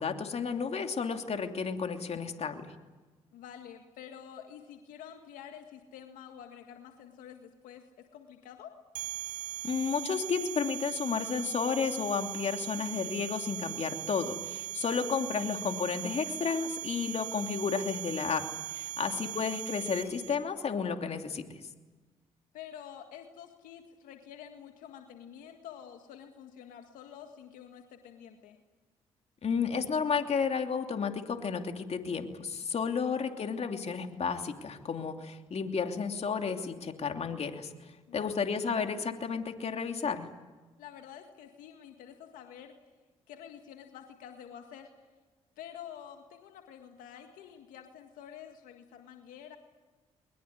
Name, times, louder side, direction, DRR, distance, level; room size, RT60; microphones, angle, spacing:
voice 1, 0.0-2.7 9.6-18.5 18.7-21.4 29.4-37.7 38.1-40.3, left 6 dB, 50° left, 5 dB, 2.9 m, -32 dB
voice 2, 3.3-8.7 12.7-13.1 14.8-15.1 19.0-19.4 22.5-28.6 33.0-33.1 38.1-38.4 40.8-42.8 43.3-44.9 45.6-49.6, left 9 dB, 85° left, 5 dB, 1.9 m, -49 dB
sound 1, 8.9-20.4, right 12 dB, 85° right, 3.6 m, -39 dB
22.0 x 21.0 x 9.6 m, 1.3 s
supercardioid pair, 60°, 14 cm